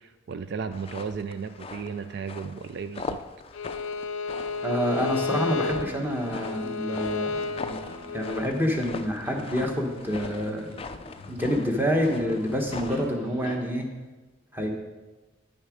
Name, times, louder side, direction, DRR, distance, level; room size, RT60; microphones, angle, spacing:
voice 1, 0.0-3.2, right 5 dB, 55° right, 10 dB, 0.3 m, -34 dB
sound 1, 0.7-13.1, left 4 dB, 30° left, 0.3 m, -41 dB
Bowed string instrument, 3.5-8.5, left 4 dB, 85° left, 0.5 m, -32 dB
sound 2, 4.5-13.5, equal, 85° right, 3.1 m, -43 dB
voice 2, 4.6-7.3 8.1-10.7 11.3-13.9 14.5-14.7, equal, 10° right, 2 dB, 1.0 m, -27 dB
9.6 x 6.5 x 5.0 m, 1.2 s
head